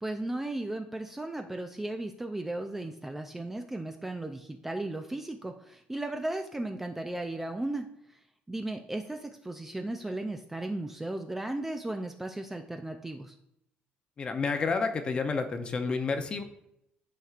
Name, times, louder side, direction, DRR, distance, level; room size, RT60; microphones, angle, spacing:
voice 1, 0.0-8.2 8.5-13.3, right 2 dB, 10° right, 5 dB, 0.3 m, -36 dB
voice 2, 14.2-16.4, left 4 dB, 30° left, 7 dB, 0.6 m, -30 dB
11.0 x 4.3 x 2.4 m, 0.80 s
cardioid pair, 150°, 4 cm